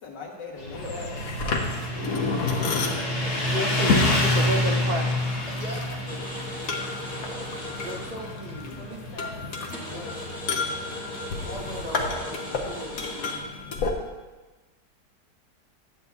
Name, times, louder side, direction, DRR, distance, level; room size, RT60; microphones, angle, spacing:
voice 1, 0.0-1.1 3.3-4.3 8.8-9.3 9.6-11.2, left 3 dB, 80° left, -1 dB, 1.8 m, -41 dB
Motorcycle, 0.6-11.7, left 1 dB, 40° left, 1.2 m, -29 dB
sound 1, 0.7-13.9, left 4 dB, 60° left, 1.1 m, -31 dB
voice 2, 2.7-3.5 5.6-6.0 6.3-6.7 7.1-7.5 7.8-9.0 11.4-13.4, equal, 30° right, -4 dB, 1.0 m, -40 dB
voice 3, 3.5-5.3, right 2 dB, 65° right, 3 dB, 1.1 m, -30 dB
sound 2, 6.1-8.4 8.7-8.8 9.3-9.4 9.7-13.4, left 1 dB, 5° left, 1.7 m, -38 dB
10.5 x 8.0 x 2.4 m, 1.2 s
omnidirectional pair, 1.9 m